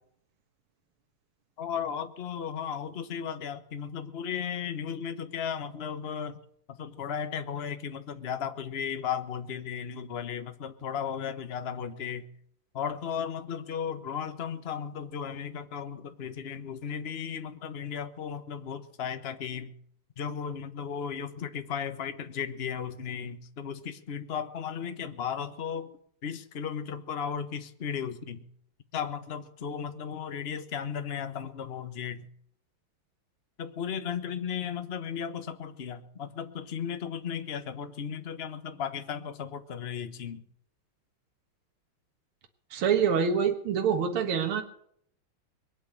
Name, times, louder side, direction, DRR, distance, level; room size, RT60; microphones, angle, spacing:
voice 1, 1.6-6.4 6.7-12.3 12.7-19.7 20.2-25.9 26.2-28.4 28.9-32.3 33.6-40.4, left 7 dB, 35° left, 9 dB, 1.2 m, -35 dB
voice 2, 42.7-44.6, right 7 dB, 75° right, 5 dB, 2.2 m, -25 dB
22.5 x 9.1 x 6.5 m, 0.66 s
omnidirectional pair, 2.4 m